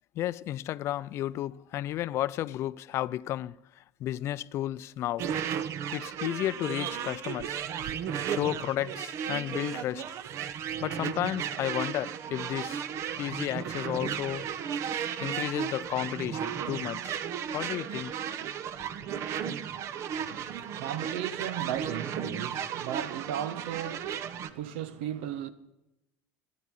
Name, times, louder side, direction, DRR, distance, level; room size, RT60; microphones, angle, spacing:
voice 1, 0.2-5.3 5.9-7.6 8.3-10.0 10.8-12.8 13.2-14.8 15.2-17.2 17.5-18.2, left 13 dB, 50° left, 0.5 m, -33 dB
sound 1, 5.2-24.5, right 8 dB, 50° right, 0.9 m, -34 dB
voice 2, 20.2-25.5, right 10 dB, 85° right, 1.1 m, -36 dB
13.5 x 9.9 x 9.0 m
supercardioid pair, 120°, 6 cm